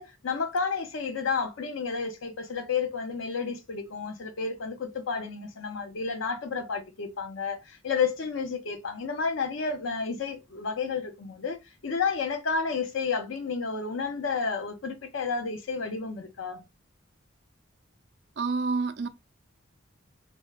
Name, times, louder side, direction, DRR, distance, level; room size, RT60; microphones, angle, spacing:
voice 1, 0.0-16.6, left 5 dB, 85° left, 0.6 m, -31 dB
voice 2, 18.4-19.1, right 4 dB, 55° right, 0.4 m, -28 dB
3.4 x 2.1 x 2.3 m
head